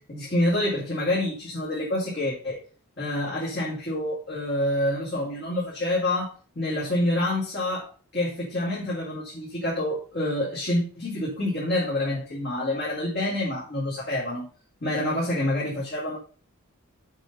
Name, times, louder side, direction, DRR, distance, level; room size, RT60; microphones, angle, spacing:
voice 1, 0.1-2.6 3.0-14.5 14.8-16.2, left 1 dB, 50° left, -5 dB, 2.4 m, -27 dB
7.2 x 5.3 x 5.5 m, 0.38 s
head